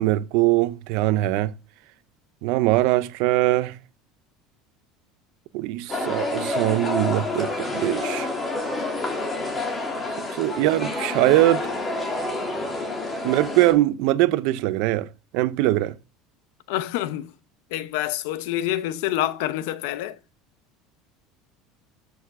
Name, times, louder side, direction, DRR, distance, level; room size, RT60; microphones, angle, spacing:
voice 1, 0.0-1.5 2.4-3.8 5.5-8.3 10.3-11.7 13.2-16.0, right 16 dB, 70° right, 0.7 m, -22 dB
sound 1, 5.9-13.7, left 2 dB, 20° left, 2.9 m, -28 dB
voice 2, 16.7-17.3 17.7-20.2, left 13 dB, 80° left, 0.8 m, -27 dB
13.5 x 6.6 x 3.7 m
cardioid pair, 135°, 0 cm